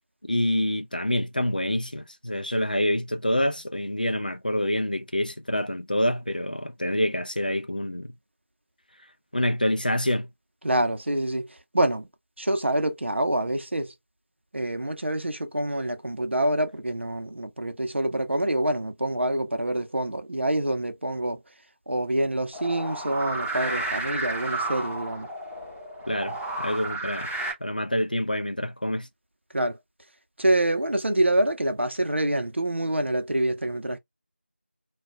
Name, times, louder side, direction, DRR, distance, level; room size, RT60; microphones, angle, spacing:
voice 1, 0.2-8.1 9.3-10.3 26.1-27.3 27.6-29.1, left 1 dB, 40° left, 0.4 m, -27 dB
voice 2, 10.6-11.5 11.7-12.1 12.4-13.9 14.5-21.4 21.9-25.3 29.5-29.8 30.4-34.0, right 1 dB, 65° right, 0.6 m, -26 dB
sound 1, 22.5-27.5, right 2 dB, 15° left, 0.8 m, -32 dB
2.3 x 2.1 x 3.6 m
figure-of-eight pair, 175°, 7 cm